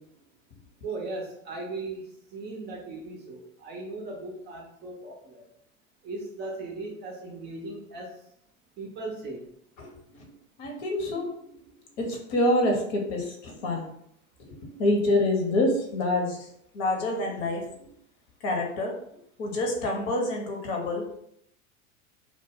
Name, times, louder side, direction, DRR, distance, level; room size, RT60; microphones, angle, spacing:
voice 1, 0.8-5.5 6.0-8.1 8.8-9.5, right 2 dB, 25° right, 0 dB, 0.5 m, -38 dB
voice 2, 10.6-11.5 12.0-13.9 14.4-14.5 14.8-16.5 16.7-17.6 18.4-18.9 19.4-21.0, left 1 dB, 55° left, 0 dB, 1.0 m, -26 dB
2.3 x 2.1 x 3.5 m, 0.72 s
hypercardioid pair, 85°, 40 cm